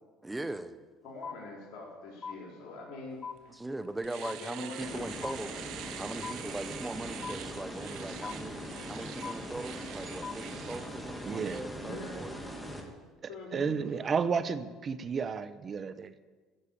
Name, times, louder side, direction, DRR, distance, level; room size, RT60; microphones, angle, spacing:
voice 1, 0.2-0.8 3.5-5.6 6.0-8.6 8.9-12.4, right 2 dB, 15° right, 11 dB, 1.0 m, -40 dB
voice 2, 1.0-3.5 4.1-5.1 11.8-12.2 13.3-13.7, left 3 dB, 65° left, -2 dB, 4.7 m, -44 dB
sound 1, 1.2-1.9 2.2-3.0 3.2-4.0 4.2-5.0 5.2-6.0 6.2-7.0 7.2-8.0 8.2-9.0 9.2-10.0 10.2-11.0, left 5 dB, 30° left, 0.4 m, -43 dB
Domestic sounds home sounds, 3.4-3.5 3.8-11.6, right 11 dB, 70° right, 0.8 m, -46 dB
sound 2, 4.8-12.8, equal, 10° left, 2.7 m, -41 dB
voice 3, 11.3-11.6 13.5-16.1, right 6 dB, 40° right, 13 dB, 0.9 m, -32 dB
14.5 x 6.7 x 8.5 m, 1.3 s
hypercardioid pair, 75°, 0 cm